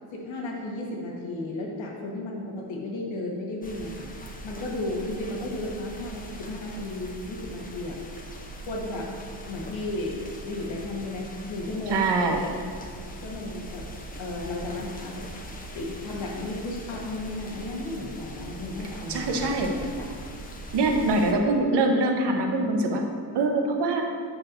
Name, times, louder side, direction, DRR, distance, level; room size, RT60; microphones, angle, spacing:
voice 1, 0.1-4.1 4.4-8.0 8.7-9.1 9.5-12.5 13.1-13.9 14.2-15.2 15.7-20.0, left 2 dB, 85° left, -1 dB, 1.4 m, -34 dB
sound 1, 3.6-21.3, right 1 dB, 20° left, 0.6 m, -41 dB
voice 2, 11.9-12.4 19.1-19.7 20.7-23.1 23.3-24.0, right 2 dB, 65° right, 3 dB, 0.9 m, -23 dB
8.5 x 6.0 x 2.6 m, 2.3 s
cardioid pair, 125°, 44 cm